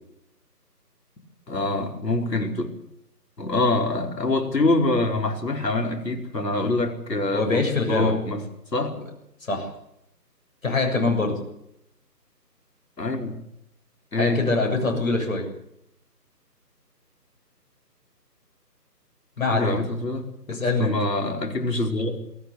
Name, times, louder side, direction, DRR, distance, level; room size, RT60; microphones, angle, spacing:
voice 1, 1.5-2.7 3.4-8.4 8.7-9.0 13.0-13.4 14.1-14.5 19.5-22.2, left 2 dB, 75° left, 5.1 m, -25 dB
voice 2, 7.3-8.1 8.9-9.0 9.5-9.7 10.6-11.4 14.1-15.5 19.4-19.8 20.5-21.0, left 3 dB, 55° left, 7.4 m, -24 dB
23.5 x 16.5 x 8.2 m
figure-of-eight pair, 165°, 50 cm